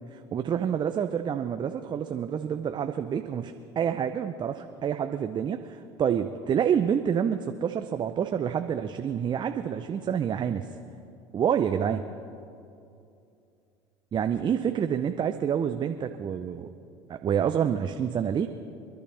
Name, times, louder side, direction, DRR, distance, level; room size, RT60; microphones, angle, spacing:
voice 1, 0.1-10.7 11.3-12.0 14.1-16.7 17.1-18.5, right 8 dB, 35° right, 8 dB, 0.7 m, -28 dB
26.5 x 11.5 x 3.4 m, 2.6 s
hypercardioid pair, 75°, 14 cm